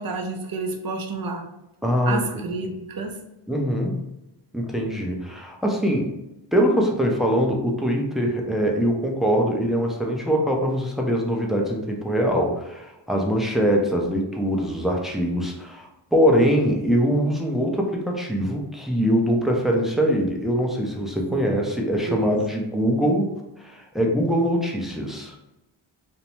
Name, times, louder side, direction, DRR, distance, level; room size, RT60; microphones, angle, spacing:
voice 1, 0.0-1.4 2.0-3.2 21.3-21.6 21.9-22.3, right 3 dB, 45° right, 4 dB, 0.6 m, -30 dB
voice 2, 1.8-2.2 3.5-4.1 4.5-6.1 6.5-23.3 23.6-25.3, equal, ahead, 0 dB, 0.5 m, -23 dB
2.6 x 2.1 x 3.0 m, 0.89 s
cardioid pair, 45°, 50 cm